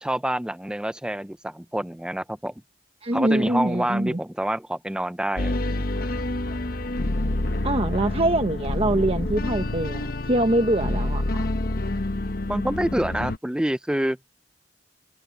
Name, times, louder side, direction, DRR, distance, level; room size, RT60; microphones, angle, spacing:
voice 1, 0.0-2.5 3.1-5.8 12.5-14.2, right 1 dB, 5° right, 0.4 m, -27 dB
voice 2, 3.0-4.2 7.6-11.5, right 1 dB, 35° right, 1.1 m, -24 dB
sound 1, 5.4-13.4, left 2 dB, 55° left, 1.0 m, -27 dB
head